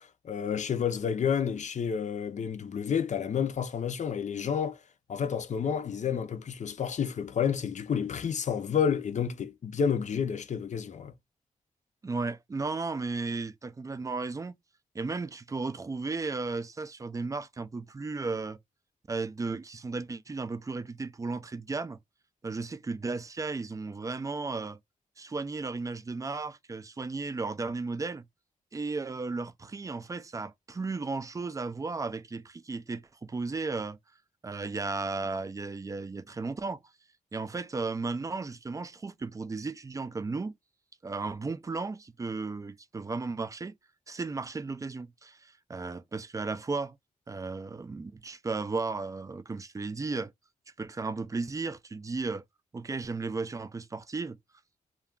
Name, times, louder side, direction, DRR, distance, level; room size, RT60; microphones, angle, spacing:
voice 1, 0.0-4.8 5.1-11.1, left 7 dB, 55° left, 0.5 m, -30 dB
voice 2, 12.0-14.6 14.9-18.6 19.1-22.0 22.4-24.8 25.2-28.3 28.7-34.0 34.4-36.8 37.3-40.5 41.0-43.8 44.1-47.0 47.3-50.3 50.8-52.4 52.7-54.4, right 3 dB, 20° right, 0.3 m, -35 dB
2.3 x 2.3 x 3.5 m
cardioid pair, 70°, 15 cm